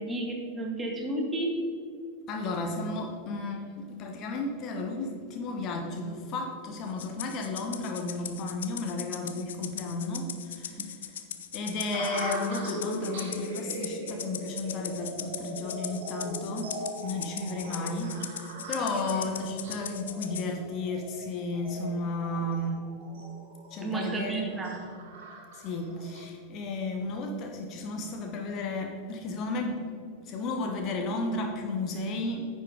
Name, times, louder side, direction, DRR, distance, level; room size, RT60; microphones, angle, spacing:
voice 1, 0.0-1.6 10.8-10.9 18.9-19.0 23.8-24.9, right 2 dB, 15° right, 1 dB, 1.6 m, -32 dB
voice 2, 2.3-11.2 11.5-22.7 23.7-24.5 25.6-29.8 30.2-32.5, left 2 dB, 35° left, 3 dB, 1.1 m, -33 dB
Rattle (instrument), 7.0-20.5, left 9 dB, 60° left, 0.6 m, -39 dB
sound 1, 11.9-26.3, right 1 dB, 55° right, 2.1 m, -40 dB
9.9 x 7.5 x 3.7 m, 2.3 s
figure-of-eight pair, 90°, 0 cm